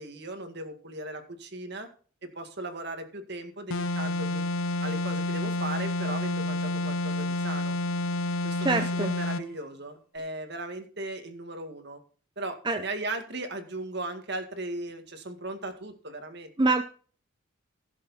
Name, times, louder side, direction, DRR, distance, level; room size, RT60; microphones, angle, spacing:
voice 1, 0.0-1.9 2.2-4.5 4.8-7.8 8.4-12.0 12.4-16.5, right 2 dB, 55° right, 6 dB, 2.0 m, -37 dB
sound 1, 3.7-9.5, left 2 dB, 80° left, 0.8 m, -29 dB
voice 2, 8.6-9.1 12.6-12.8 16.6-16.8, right 3 dB, 20° right, 8 dB, 0.6 m, -25 dB
16.0 x 7.3 x 4.3 m, 0.42 s
head